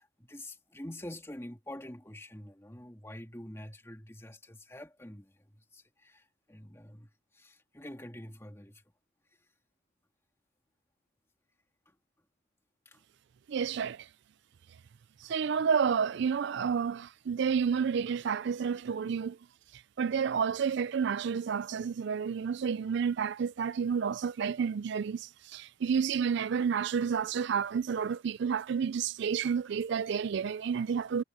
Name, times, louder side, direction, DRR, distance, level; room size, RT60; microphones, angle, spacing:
voice 1, 0.0-8.9 9.4-9.5 11.9-12.0 12.9-13.0 15.2-15.3, left 1 dB, 15° left, 2.0 m, -47 dB
voice 2, 13.5-14.1 15.2-19.4 19.7-31.2, right 6 dB, 55° right, 0.4 m, -30 dB
head